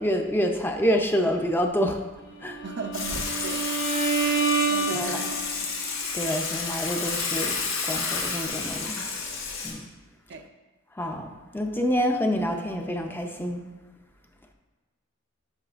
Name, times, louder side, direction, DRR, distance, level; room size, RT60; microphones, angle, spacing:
voice 1, 0.0-2.0 2.4-2.6 4.9-5.2 6.1-9.0 9.6-9.8 11.0-13.6, equal, 10° left, 4 dB, 0.5 m, -27 dB
Bowed string instrument, 2.5-5.6, right 4 dB, 50° left, 1.4 m, -27 dB
voice 2, 2.6-3.7 4.7-5.7 10.3-10.5, right 3 dB, 60° right, 6 dB, 0.5 m, -37 dB
Water / Water tap faucet / Sink (filling or washing), 2.9-9.7, left 4 dB, 80° left, 1.4 m, -30 dB
10.5 x 5.7 x 2.5 m, 1.2 s
head